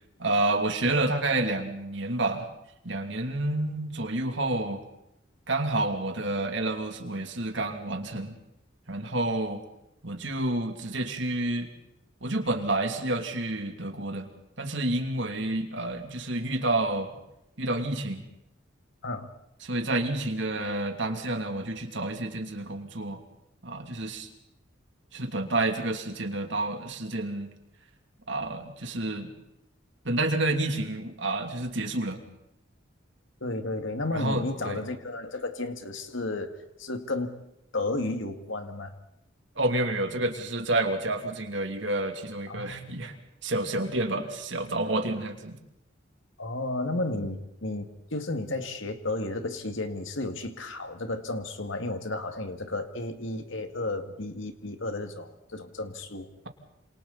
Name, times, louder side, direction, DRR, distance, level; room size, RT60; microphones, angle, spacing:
voice 1, 0.2-2.5 2.8-4.8 5.5-8.3 8.9-9.6 10.0-11.7 12.2-14.3 14.6-17.1 17.6-18.2 19.6-23.2 23.6-24.3 25.1-27.5 28.3-29.3 30.0-32.2 34.1-34.8 39.6-43.1 43.4-45.6, right 2 dB, 65° right, 5 dB, 2.8 m, -29 dB
voice 2, 33.4-37.4 37.7-38.9 42.5-43.1 44.1-44.2 46.4-56.3, left 2 dB, 70° left, 7 dB, 2.1 m, -33 dB
28.0 x 27.0 x 4.2 m, 0.85 s
head